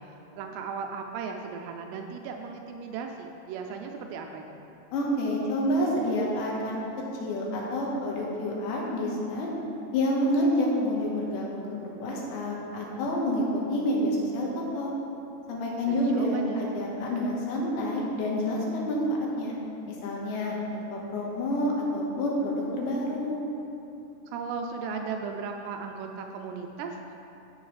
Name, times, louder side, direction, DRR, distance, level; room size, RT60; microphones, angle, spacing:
voice 1, 0.1-4.6 15.9-16.6 24.3-27.1, right 5 dB, 80° right, 3 dB, 2.5 m, -36 dB
voice 2, 4.9-6.8 7.2-9.5 9.9-14.9 15.5-19.0 19.4-19.5 19.9-23.4, left 1 dB, 75° left, -3 dB, 3.5 m, -28 dB
14.5 x 7.2 x 3.3 m, 2.8 s
omnidirectional pair, 5.1 m